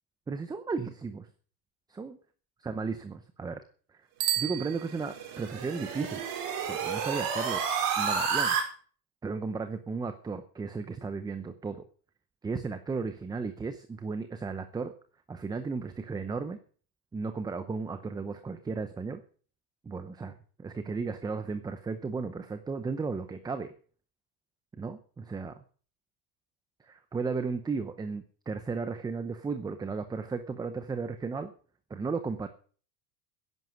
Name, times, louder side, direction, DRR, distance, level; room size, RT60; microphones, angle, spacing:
voice 1, 0.3-1.3 2.0-2.2 2.6-3.6 3.9-4.1 4.4-6.2 6.7-7.6 8.0-8.6 9.2-11.8 12.4-14.9 15.3-16.6 17.1-19.2 19.8-20.3 20.6-23.7 24.8-25.6 26.8-31.5 31.9-32.5, right 4 dB, 10° right, 9 dB, 0.7 m, -35 dB
Bicycle bell, 4.1-5.5, right 12 dB, 80° right, 3.2 m, -33 dB
sound 1, 4.7-8.6, right 6 dB, 40° right, 5.0 m, -31 dB
14.0 x 11.0 x 6.4 m, 0.43 s
supercardioid pair, 150°, 50 cm